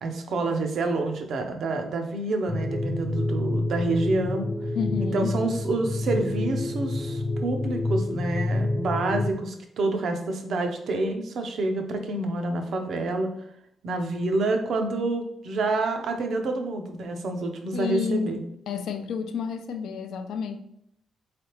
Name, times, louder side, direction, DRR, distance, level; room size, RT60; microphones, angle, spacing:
voice 1, 0.0-4.5 5.1-13.3 13.8-18.4, right 2 dB, 65° right, 5 dB, 0.6 m, -28 dB
sound 1, 2.5-9.3, left 2 dB, 5° left, 0.6 m, -28 dB
voice 2, 4.7-5.3 17.7-18.3 18.7-20.6, left 6 dB, 80° left, 7 dB, 0.4 m, -30 dB
3.8 x 3.3 x 2.9 m, 0.74 s
cardioid pair, 115°, 0 cm